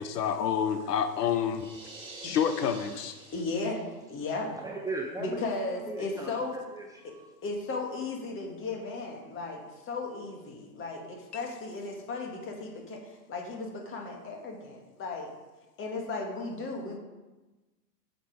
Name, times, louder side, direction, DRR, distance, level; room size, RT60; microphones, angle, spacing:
voice 1, 0.0-1.7 2.2-3.2, left 8 dB, 75° left, 9 dB, 1.0 m, -28 dB
sound 1, 1.5-4.0, right 3 dB, 25° right, 3.5 m, -47 dB
voice 2, 3.3-4.5 5.2-6.6 7.4-15.3 15.8-17.0, left 3 dB, 25° left, 1 dB, 2.1 m, -35 dB
voice 3, 4.6-5.5 5.8-7.3, right 2 dB, 5° right, -1 dB, 0.7 m, -38 dB
9.1 x 6.9 x 4.9 m, 1.2 s
hypercardioid pair, 120°, 48 cm